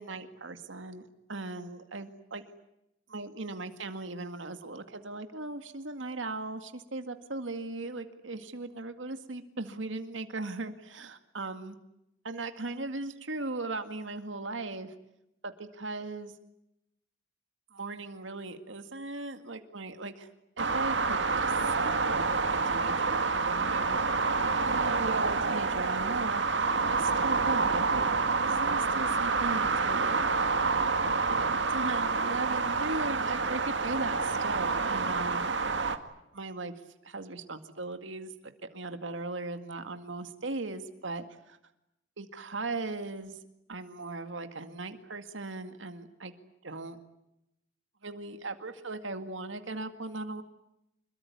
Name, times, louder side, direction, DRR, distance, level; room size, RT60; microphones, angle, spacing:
voice 1, 0.0-2.4 3.1-11.8 12.2-14.9 15.4-16.3 17.7-20.3 20.6-24.0 24.6-28.0 28.4-30.2 31.3-35.5 36.3-36.7 37.0-38.3 38.7-41.6 42.2-43.4 43.7-46.3 46.6-47.0 48.0-50.4, right 2 dB, 85° right, 8 dB, 2.1 m, -38 dB
sound 1, 20.6-36.0, right 4 dB, 70° right, 2.1 m, -28 dB
26.5 x 22.5 x 9.5 m, 0.84 s
head